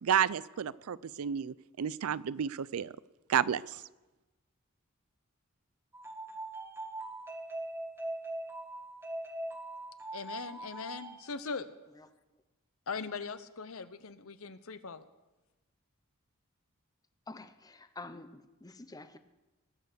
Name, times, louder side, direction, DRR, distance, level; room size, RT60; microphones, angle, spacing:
voice 1, 0.0-2.9 3.3-3.8, right 8 dB, 85° right, 19 dB, 0.4 m, -31 dB
sound 1, 5.9-11.3, right 2 dB, 10° right, 1.1 m, -41 dB
voice 2, 10.1-11.7 12.9-15.1, left 5 dB, 70° left, 13 dB, 0.8 m, -40 dB
voice 3, 17.3-19.2, left 2 dB, 15° left, 11 dB, 0.7 m, -48 dB
19.5 x 8.1 x 6.6 m, 1.1 s
head